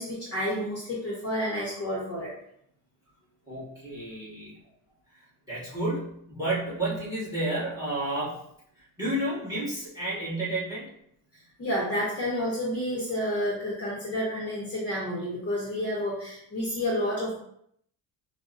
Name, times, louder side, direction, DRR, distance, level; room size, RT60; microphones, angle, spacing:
voice 1, 0.0-2.3 11.6-17.3, equal, 30° left, -5 dB, 0.7 m, -30 dB
voice 2, 3.5-4.6 5.1-8.4 8.8-10.9, right 1 dB, 5° right, -8 dB, 1.3 m, -31 dB
4.9 x 2.1 x 2.5 m, 0.71 s
cardioid pair, 170°, 47 cm